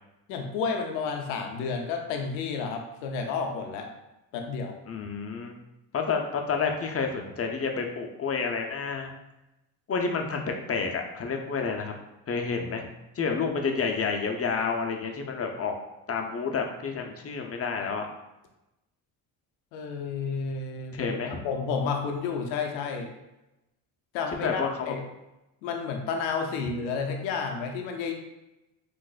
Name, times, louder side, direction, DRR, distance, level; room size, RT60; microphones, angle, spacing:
voice 1, 0.3-3.9 4.3-4.8 19.7-23.1 24.1-25.0 25.6-28.1, left 5 dB, 90° left, 3 dB, 0.6 m, -31 dB
voice 2, 4.9-5.6 5.9-9.1 9.9-11.9 12.3-12.9 13.2-15.7 16.1-18.1 20.9-21.4 24.4-24.9 26.5-26.6, left 5 dB, 30° left, 3 dB, 0.6 m, -29 dB
3.9 x 2.6 x 2.4 m, 0.95 s
supercardioid pair, 60°, 49 cm